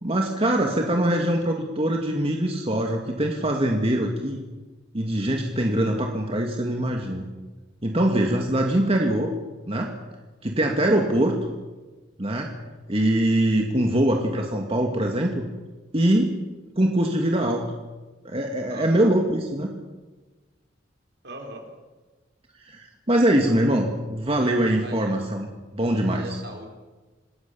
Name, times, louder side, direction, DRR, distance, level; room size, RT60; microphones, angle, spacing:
voice 1, 0.0-4.4 4.9-7.2 7.8-9.3 9.7-10.0 10.4-11.4 12.2-12.6 12.9-15.4 15.9-16.4 16.8-17.6 18.2-19.7 22.7-26.2, right 1 dB, 30° right, 1 dB, 2.2 m, -23 dB
voice 2, 18.7-19.1 21.2-21.7 24.7-25.2 25.8-26.7, right 1 dB, 60° right, 2 dB, 5.1 m, -40 dB
27.0 x 19.5 x 7.1 m, 1.2 s
head